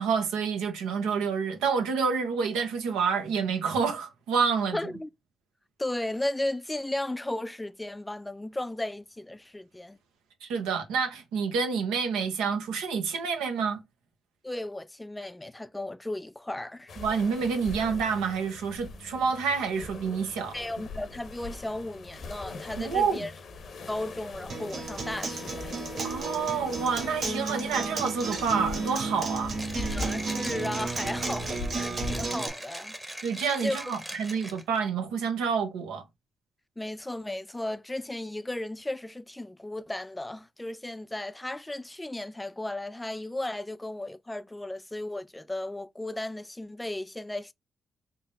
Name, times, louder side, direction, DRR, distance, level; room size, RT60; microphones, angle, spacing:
voice 1, 0.0-4.8 10.4-13.8 17.0-20.6 22.8-23.3 26.0-29.5 33.2-36.0, right 5 dB, 90° right, 0.6 m, -28 dB
voice 2, 4.7-5.1 5.8-10.0 14.4-16.9 20.5-23.3 23.9-25.8 29.7-33.0 33.6-33.9 36.8-47.5, left 1 dB, 15° left, 0.4 m, -35 dB
sound 1, 16.9-32.4, left 3 dB, 70° left, 0.7 m, -41 dB
Acoustic guitar, 24.5-32.5, right 4 dB, 65° right, 1.0 m, -33 dB
Mechanisms, 29.5-34.8, right 1 dB, 20° right, 0.9 m, -40 dB
3.7 x 2.0 x 3.8 m
supercardioid pair, 45°, 0 cm